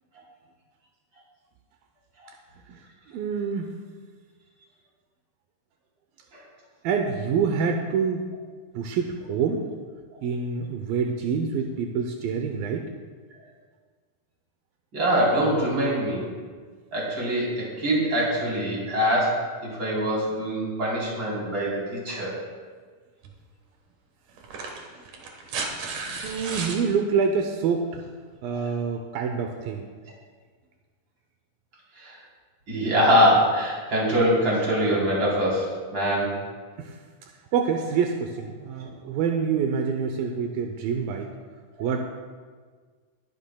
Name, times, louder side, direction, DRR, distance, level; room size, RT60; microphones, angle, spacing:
voice 1, 3.1-3.8 6.8-8.3 8.7-9.6 10.2-12.9 26.2-28.0 28.4-29.9 36.8-37.0 37.5-41.3 41.8-42.0, right 6 dB, 80° right, 4 dB, 2.5 m, -26 dB
voice 2, 14.9-16.3 16.9-22.3 28.6-28.7 32.0-32.2 32.7-36.3, equal, 30° right, -5 dB, 4.2 m, -23 dB
sound 1, 23.2-23.4 24.4-26.8 28.3-28.4, right 4 dB, 60° right, 2.7 m, -33 dB
20.5 x 11.0 x 2.3 m, 1.5 s
omnidirectional pair, 4.1 m